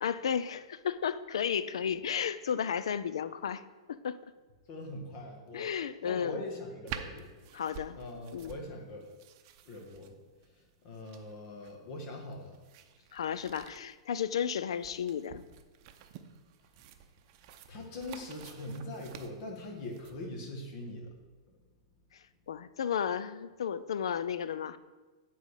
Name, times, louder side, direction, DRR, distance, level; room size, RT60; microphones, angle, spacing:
voice 1, 0.0-3.6 3.9-4.2 5.5-6.4 7.5-8.0 8.3-8.6 13.1-15.4 22.1-24.8, left 8 dB, 80° left, 14 dB, 0.4 m, -33 dB
voice 2, 4.7-5.7 6.0-7.3 8.0-9.1 9.7-10.1 10.4-12.6 17.7-21.1, left 1 dB, 50° left, 2 dB, 1.8 m, -42 dB
sound 1, 6.9-20.1, right 9 dB, 45° right, 0.6 m, -49 dB
9.2 x 4.0 x 4.9 m, 1.3 s
hypercardioid pair, 120°, 3 cm